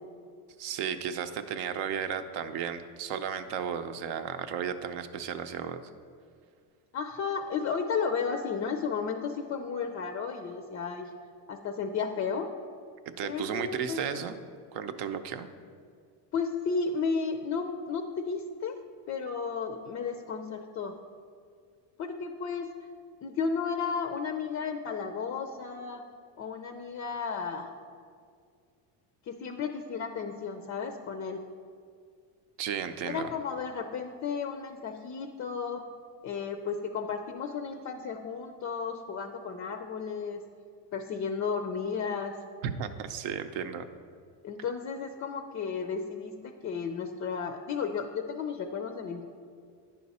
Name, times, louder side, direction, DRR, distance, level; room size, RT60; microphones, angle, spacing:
voice 1, 0.6-5.8 13.2-14.3 14.7-15.5 32.6-33.3 42.6-43.9, right 7 dB, 70° right, 9 dB, 0.7 m, -34 dB
voice 2, 6.9-11.1 11.5-12.5 13.2-14.0 16.3-18.8 19.1-20.9 22.0-22.7 23.2-26.0 26.4-27.7 29.3-31.4 33.0-35.8 36.2-40.4 40.9-42.4 44.4-49.3, left 5 dB, 35° left, 7 dB, 0.4 m, -33 dB
9.4 x 5.9 x 4.1 m, 2.1 s
cardioid pair, 130°, 44 cm